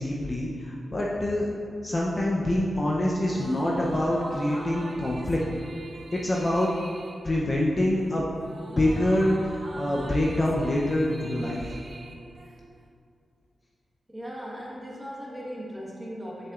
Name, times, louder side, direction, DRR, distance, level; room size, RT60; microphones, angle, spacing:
voice 1, 0.0-1.5 1.8-5.4 6.1-6.7 7.2-8.3 8.8-11.8, left 1 dB, 30° left, -3 dB, 0.6 m, -25 dB
sound 1, 3.2-12.9, right 2 dB, 45° right, 0.6 m, -43 dB
voice 2, 14.1-16.5, equal, 10° right, -5 dB, 1.3 m, -38 dB
7.5 x 6.6 x 2.4 m, 2.3 s
wide cardioid pair, 130°, 0 cm